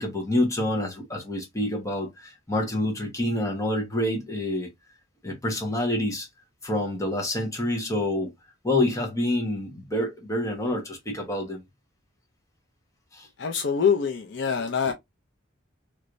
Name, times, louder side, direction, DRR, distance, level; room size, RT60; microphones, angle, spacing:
voice 1, 0.0-4.7 5.2-6.3 6.6-8.3 8.6-11.6 13.1-13.3, left 1 dB, 15° left, 1.1 m, -27 dB
voice 2, 13.4-14.9, left 6 dB, 60° left, 0.5 m, -24 dB
3.2 x 3.1 x 2.5 m
head